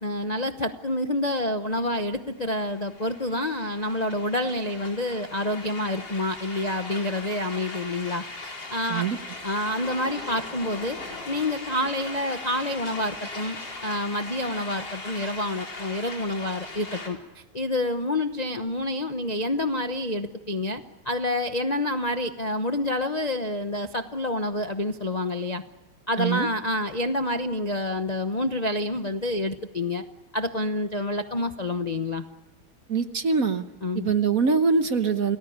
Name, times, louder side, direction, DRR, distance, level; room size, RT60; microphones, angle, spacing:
voice 1, 0.0-9.0 9.4-11.0 11.3-13.6 13.8-25.6 26.1-30.0 30.3-32.2 33.8-34.1, left 1 dB, 35° left, 6 dB, 0.7 m, -28 dB
sound 1, 2.6-17.1, left 2 dB, 60° left, 5.1 m, -39 dB
voice 2, 26.2-26.5 32.9-33.6 33.9-35.4, right 5 dB, 50° right, 9 dB, 1.3 m, -23 dB
29.0 x 19.0 x 8.7 m, 1.1 s
omnidirectional pair, 2.2 m